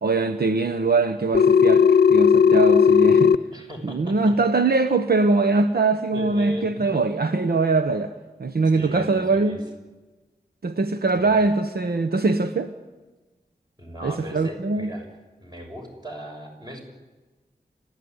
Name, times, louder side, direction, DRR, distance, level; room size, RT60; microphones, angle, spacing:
voice 1, 0.0-3.3 3.8-8.1 8.4-9.6 10.6-12.7 14.0-14.9, right 3 dB, 70° right, 9 dB, 1.0 m, -22 dB
Telephone, 1.3-3.3, left 7 dB, 80° left, 0.7 m, -15 dB
voice 2, 3.5-4.1 6.1-7.0 8.7-9.6 11.1-11.4 13.8-15.1 15.4-16.8, left 1 dB, 25° right, 1 dB, 7.0 m, -37 dB
30.0 x 14.0 x 9.7 m, 1.2 s
wide cardioid pair, 85°, 17 cm